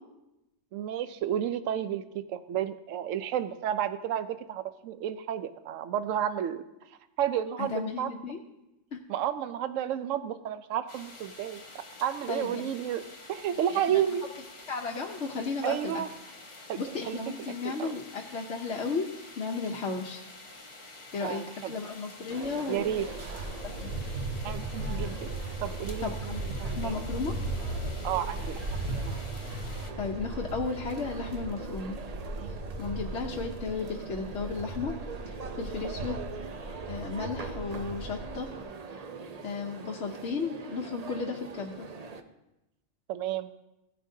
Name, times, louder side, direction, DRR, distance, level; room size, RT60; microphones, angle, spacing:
voice 1, 0.7-6.6 7.2-8.1 9.1-13.0 13.3-14.2 15.6-16.1 16.7-16.8 17.1-17.2 17.6-18.0 21.2-21.7 22.7-23.1 24.4-25.3 25.6-26.3 26.6-27.0 28.0-28.6 29.1-29.2 32.4-32.5 43.1-43.5, right 10 dB, 85° right, 12 dB, 1.0 m, -31 dB
voice 2, 7.6-8.4 8.9-9.0 12.3-12.8 13.7-14.0 14.7-16.0 16.8-19.1 19.4-20.2 21.1-22.9 23.6-23.9 26.0-27.3 30.0-32.0 32.5-34.9 35.3-36.2 36.9-38.5 39.4-41.9, left 4 dB, 65° left, 0 dB, 1.1 m, -34 dB
sound 1, 10.9-29.9, left 2 dB, 25° left, 0.9 m, -48 dB
sound 2, 22.3-42.2, right 4 dB, 40° right, 0.6 m, -43 dB
sound 3, 22.8-38.6, right 2 dB, 65° right, 1.6 m, -37 dB
16.0 x 9.9 x 2.7 m, 0.95 s
omnidirectional pair, 1.3 m